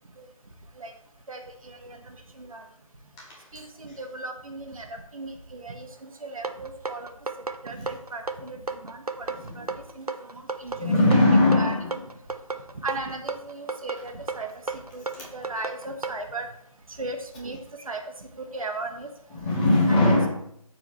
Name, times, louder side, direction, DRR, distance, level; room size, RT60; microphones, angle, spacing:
voice 1, 1.3-2.6 3.5-7.1 7.6-9.7 9.9-10.9 11.6-11.7 12.8-16.5 16.9-19.1 19.9-20.0, right 2 dB, 70° right, 4 dB, 1.5 m, -37 dB
sound 1, 6.4-16.2, right 3 dB, 90° right, 0.8 m, -33 dB
voice 2, 9.3-9.7 10.7-12.0 19.3-20.3, left 2 dB, 15° left, -3 dB, 1.3 m, -21 dB
13.5 x 4.8 x 3.2 m, 0.72 s
figure-of-eight pair, 160°, 19 cm